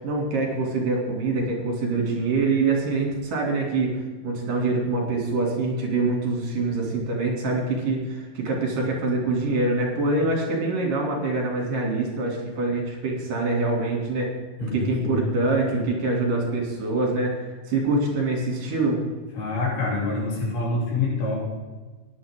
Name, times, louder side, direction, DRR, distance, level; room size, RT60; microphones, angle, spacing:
voice 1, 0.0-14.3 14.6-19.0, right 3 dB, 60° right, -1 dB, 4.3 m, -25 dB
voice 2, 14.6-15.9 19.4-21.4, left 3 dB, 75° left, -4 dB, 5.2 m, -27 dB
15.5 x 10.5 x 3.7 m, 1.3 s
omnidirectional pair, 4.4 m